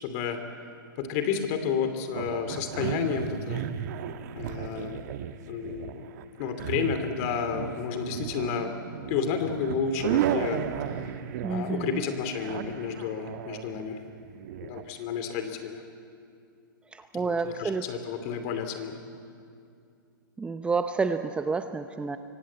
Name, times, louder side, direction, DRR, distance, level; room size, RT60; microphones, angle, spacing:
voice 1, 0.0-0.4 1.0-3.6 4.3-5.0 5.5-6.1 6.4-8.7 9.1-10.6 11.0-11.1 11.5-14.0 14.6-15.8 17.1-19.0, left 6 dB, 40° left, 8 dB, 2.7 m, -31 dB
sound 1, 2.1-14.8, right 10 dB, 50° right, 1.3 m, -34 dB
voice 2, 11.4-12.0 16.9-17.8 20.4-22.2, right 4 dB, 10° right, 9 dB, 0.7 m, -29 dB
24.5 x 17.0 x 8.6 m, 2.4 s
hypercardioid pair, 125°, 12 cm